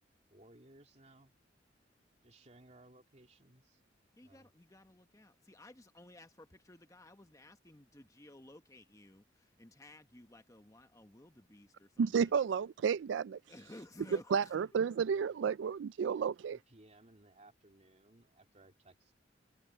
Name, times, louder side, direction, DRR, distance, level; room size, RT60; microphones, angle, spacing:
voice 1, 0.3-1.3 2.2-3.8 4.2-4.5 16.5-19.1, right 1 dB, 35° right, 2.7 m, -61 dB
voice 2, 4.2-12.3 13.5-14.6, left 1 dB, 20° left, 1.2 m, -56 dB
voice 3, 12.0-13.4 14.3-16.6, right 6 dB, 75° right, 0.3 m, -32 dB
head